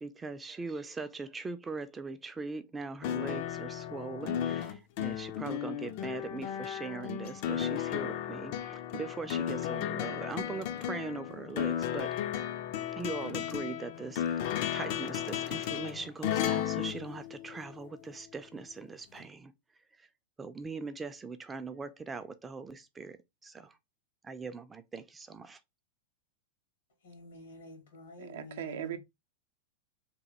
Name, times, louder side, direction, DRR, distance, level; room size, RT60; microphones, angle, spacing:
voice 1, 0.0-12.2 12.9-19.5 20.4-23.2 23.4-23.7 24.2-25.6, right 4 dB, 15° right, 0.3 m, -41 dB
sound 1, 3.0-17.9 19.2-19.3, left 10 dB, 55° left, 0.4 m, -34 dB
voice 2, 27.0-29.0, left 2 dB, 90° left, 1.6 m, -49 dB
voice 3, 28.2-29.0, right 11 dB, 75° right, 0.5 m, -38 dB
3.0 x 2.2 x 2.8 m
hypercardioid pair, 125°, 0 cm